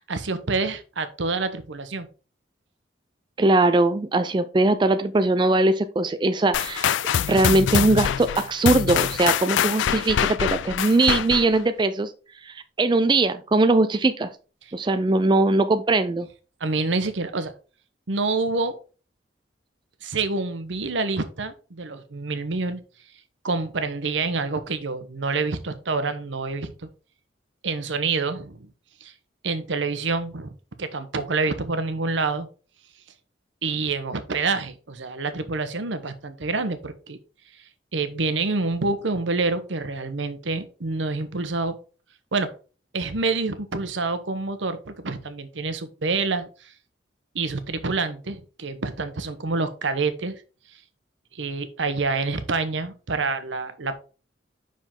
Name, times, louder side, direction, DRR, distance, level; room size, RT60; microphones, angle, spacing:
voice 1, 0.1-2.1 16.6-17.5 18.1-18.8 20.0-22.8 23.4-26.7 27.6-28.7 29.0-29.1 29.4-32.5 33.6-37.2 37.9-41.8 42.3-42.5 42.9-46.7 47.3-50.4 51.3-53.9, right 3 dB, 85° right, 11 dB, 0.9 m, -27 dB
voice 2, 3.4-6.9 7.3-12.1 12.4-14.3 14.7-16.3, right 2 dB, 25° right, 10 dB, 0.4 m, -21 dB
sound 1, 6.5-11.6, left 9 dB, 85° left, 0.3 m, -24 dB
5.7 x 5.1 x 3.7 m, 0.35 s
head